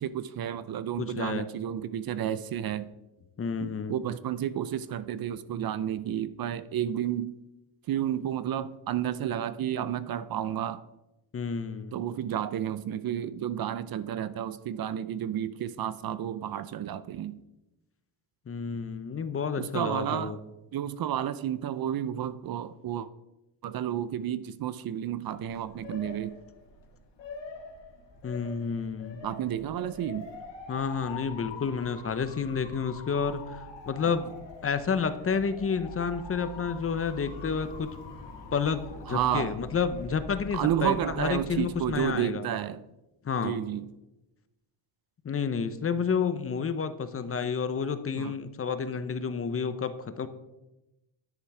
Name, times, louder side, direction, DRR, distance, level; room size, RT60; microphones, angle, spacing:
voice 1, 0.0-2.9 3.6-7.3 7.9-10.8 11.9-17.4 19.6-20.4 20.7-23.1 23.6-26.4 29.2-30.3 34.0-34.2 39.1-39.6 40.5-42.8 43.4-43.9 48.2-48.3, right 10 dB, 50° right, 15 dB, 0.5 m, -31 dB
voice 2, 1.0-1.5 3.4-4.0 11.3-11.9 18.5-20.4 28.2-29.2 30.7-34.3 34.6-37.9 38.5-42.4 43.2-43.6 45.2-50.3, left 6 dB, 30° left, 12 dB, 0.7 m, -30 dB
Motor vehicle (road) / Siren, 25.3-42.1, left 3 dB, 65° left, 2.1 m, -44 dB
10.5 x 6.6 x 4.8 m, 0.98 s
cardioid pair, 110°, 46 cm